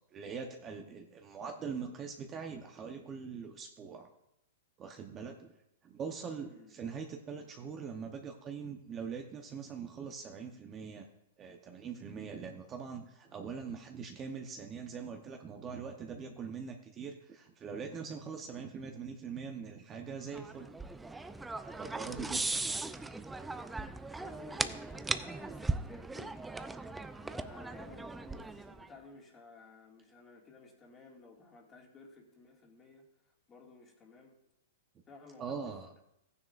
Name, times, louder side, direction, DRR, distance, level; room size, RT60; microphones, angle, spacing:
voice 1, 0.1-4.1 4.8-5.5 5.8-11.1 11.4-20.7 21.6-22.8 35.4-35.9, right 6 dB, 25° right, 3 dB, 0.9 m, -42 dB
sound 1, 20.3-28.9, right 3 dB, 5° right, 0.4 m, -38 dB
voice 2, 22.1-22.6 24.1-26.5 26.7-34.4 35.1-35.8, left 3 dB, 20° left, 0 dB, 2.1 m, -55 dB
14.5 x 9.6 x 2.5 m, 0.82 s
hypercardioid pair, 140°, 0 cm